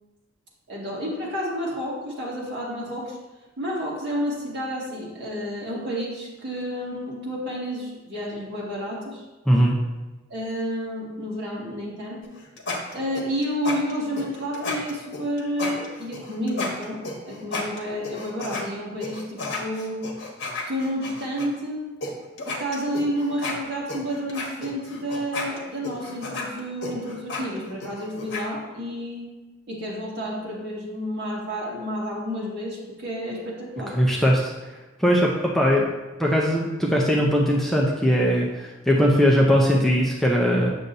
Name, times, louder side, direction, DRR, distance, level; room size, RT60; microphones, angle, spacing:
voice 1, 0.7-3.2 3.6-9.2 10.3-12.2 12.9-20.0 20.7-21.8 22.4-29.3 29.7-34.0, equal, 55° right, -6 dB, 2.1 m, -30 dB
voice 2, 9.5-9.8 33.9-34.5 35.0-35.9 36.2-40.7, equal, ahead, -3 dB, 0.5 m, -20 dB
sound 1, 12.2-18.6 19.0-21.5 22.0-22.1 22.4-28.4, left 3 dB, 55° left, 1.2 m, -33 dB
8.2 x 6.6 x 2.7 m, 1.2 s
head